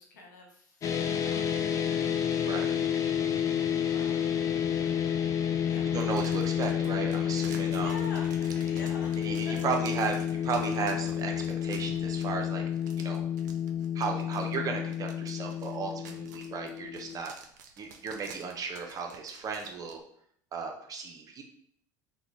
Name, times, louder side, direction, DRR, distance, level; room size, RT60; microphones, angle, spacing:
voice 1, 0.0-1.4 3.8-4.3 5.7-5.9 7.8-9.5, left 2 dB, 80° left, 0 dB, 0.9 m, -46 dB
sound 1, 0.8-17.2, left 9 dB, 35° left, 0.5 m, -30 dB
voice 2, 2.4-2.8 5.9-7.9 9.2-10.2 10.4-12.6 13.0-13.2 13.9-17.3 17.8-20.0 20.5-21.4, right 5 dB, 40° right, 3 dB, 0.8 m, -35 dB
sound 2, 6.0-20.0, right 6 dB, 75° right, 0.4 m, -52 dB
3.8 x 2.2 x 3.1 m, 0.66 s
hypercardioid pair, 75°, 10 cm